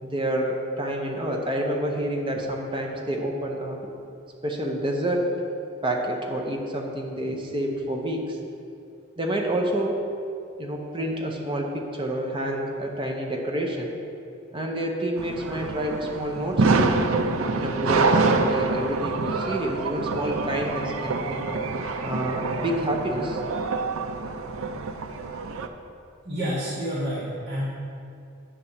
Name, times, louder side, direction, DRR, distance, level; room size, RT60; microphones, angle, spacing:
voice 1, 0.0-3.8 4.4-5.3 5.8-8.4 9.2-10.0 10.6-13.9 14.5-17.0 17.5-21.5 22.0-23.4, right 1 dB, 25° right, 0 dB, 0.8 m, -28 dB
sound 1, 15.2-25.7, right 3 dB, 75° right, 0.6 m, -26 dB
voice 2, 26.2-27.7, equal, 50° right, -10 dB, 1.7 m, -29 dB
9.9 x 4.1 x 7.3 m, 2.5 s
head